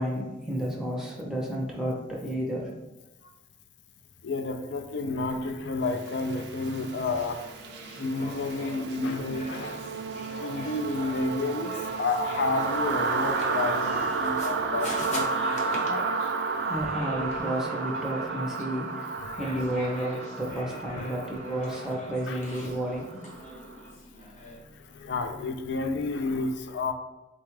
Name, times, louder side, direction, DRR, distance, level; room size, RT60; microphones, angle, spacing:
voice 1, 0.0-2.7 16.6-19.1 19.4-23.1, right 1 dB, 5° right, -3 dB, 0.6 m, -31 dB
voice 2, 4.2-7.4 8.0-16.3 19.1-19.4 20.9-21.1 22.3-22.4 24.7-26.9, left 3 dB, 65° left, 7 dB, 0.4 m, -31 dB
sound 1, 6.0-23.7, right 4 dB, 60° right, 0.3 m, -32 dB
sound 2, 6.9-24.6, left 1 dB, 40° left, 0.8 m, -44 dB
3.8 x 2.3 x 4.6 m, 1.0 s
head